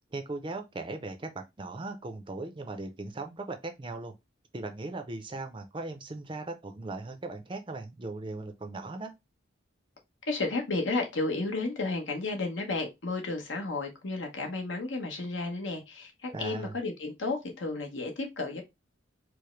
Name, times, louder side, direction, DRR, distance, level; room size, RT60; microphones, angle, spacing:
voice 1, 0.1-4.1 4.5-9.1 16.3-16.8, right 2 dB, 25° right, 0.5 m, -38 dB
voice 2, 10.3-18.6, left 3 dB, 70° left, 1.0 m, -32 dB
4.7 x 2.0 x 3.1 m
head